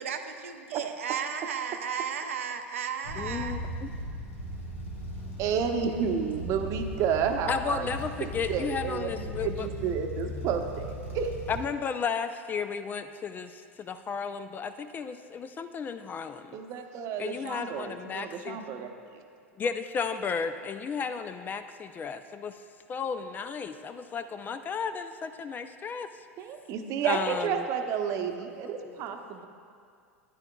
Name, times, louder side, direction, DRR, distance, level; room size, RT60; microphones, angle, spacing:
voice 1, 0.0-3.6, right 7 dB, 75° right, 6 dB, 0.6 m, -34 dB
sound 1, 3.0-11.6, equal, 85° left, 1.8 m, -38 dB
voice 2, 3.2-3.9 7.5-9.7 11.5-16.6 17.2-18.6 19.6-22.5 22.9-26.1 27.0-27.7 28.8-28.9, left 6 dB, 25° left, 10 dB, 0.4 m, -34 dB
voice 3, 5.4-11.3 16.5-18.9 26.4-29.5, right 7 dB, 45° right, 5 dB, 0.8 m, -31 dB
13.0 x 9.9 x 2.3 m, 2.2 s
hypercardioid pair, 90°, 7 cm